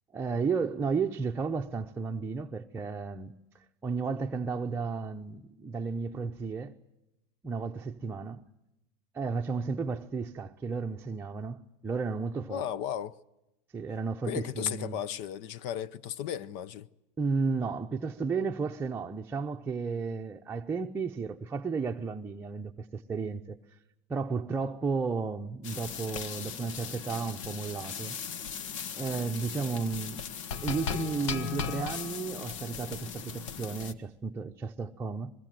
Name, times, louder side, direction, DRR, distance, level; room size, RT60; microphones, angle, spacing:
voice 1, 0.1-3.4 3.8-6.7 7.4-8.4 9.1-12.6 13.7-15.0 17.2-23.6 24.1-28.2 28.9-30.2 30.6-35.3, right 4 dB, 15° right, 0.8 m, -33 dB
voice 2, 12.5-13.2 14.3-16.9, left 10 dB, 60° left, 0.8 m, -35 dB
sound 1, 25.6-33.9, left 7 dB, 75° left, 1.3 m, -37 dB
25.5 x 21.5 x 7.7 m
supercardioid pair, 120°, 16 cm